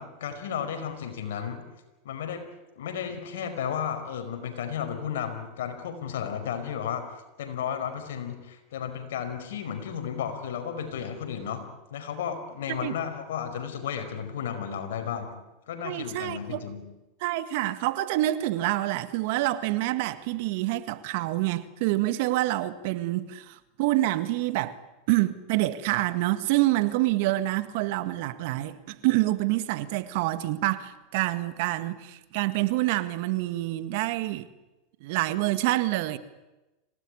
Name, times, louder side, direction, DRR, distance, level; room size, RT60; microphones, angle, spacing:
voice 1, 0.0-1.6 2.0-2.4 2.7-7.1 7.4-11.6 11.9-15.4 15.7-16.8, left 8 dB, 85° left, 5.1 m, -33 dB
voice 2, 15.8-16.6 17.2-24.8 25.1-34.5 35.0-36.2, right 17 dB, 65° right, 1.7 m, -27 dB
26.5 x 18.0 x 9.9 m
supercardioid pair, 120°, 0 cm